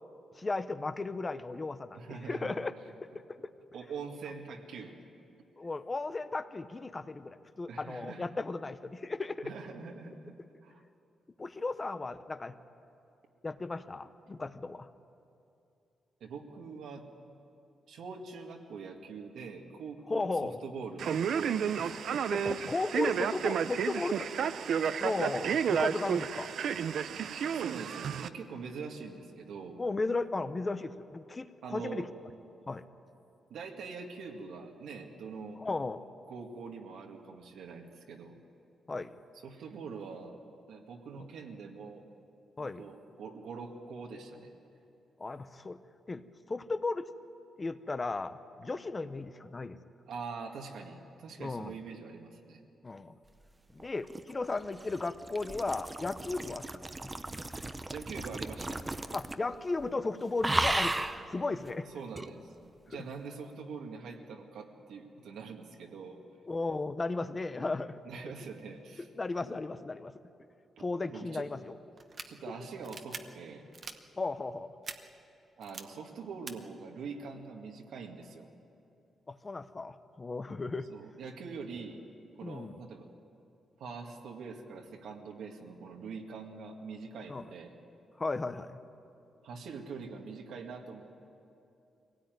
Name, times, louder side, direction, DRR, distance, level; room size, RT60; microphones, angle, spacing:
voice 1, 0.3-2.7 3.3-3.5 5.6-9.5 11.4-12.5 13.4-14.9 20.1-20.6 22.3-24.3 25.0-26.5 29.8-32.1 32.7-32.8 35.6-36.0 38.9-39.1 41.2-41.3 42.6-42.9 45.2-45.8 46.1-46.2 46.5-47.1 47.6-49.8 51.4-51.8 52.8-53.2 53.7-57.1 59.1-61.9 62.9-63.0 66.5-68.0 69.2-70.1 70.8-71.7 74.2-74.7 79.3-80.9 82.4-82.8 87.3-87.4 88.2-88.8, left 3 dB, 20° left, 12 dB, 0.7 m, -35 dB
voice 2, 1.9-2.6 3.7-5.0 7.7-8.2 9.4-10.4 10.6-10.8 16.2-17.1 17.9-22.0 27.5-29.8 31.6-32.1 33.5-35.6 36.3-38.4 39.3-40.4 40.7-42.1 42.6-44.5 50.1-52.6 57.9-58.8 61.9-62.5 62.9-66.2 68.1-69.1 71.1-71.5 72.3-73.7 75.6-78.5 80.9-82.0 82.4-83.1 83.8-87.7 89.4-91.3, right 5 dB, 80° right, 1 dB, 2.1 m, -44 dB
Male speech man speaking, 21.0-28.3, right 7 dB, 60° right, 0.6 m, -31 dB
sound 1, 53.8-59.5 59.8-60.1 60.4-61.2 62.2-62.3, right 2 dB, 15° right, 0.6 m, -35 dB
sound 2, 72.0-72.3 72.8-73.2 73.7-74.0 74.8-75.0 75.6-75.8 76.5-76.6, right 4 dB, 35° right, 1.0 m, -42 dB
23.5 x 17.5 x 9.3 m, 2.7 s
wide cardioid pair, 165°, 0 cm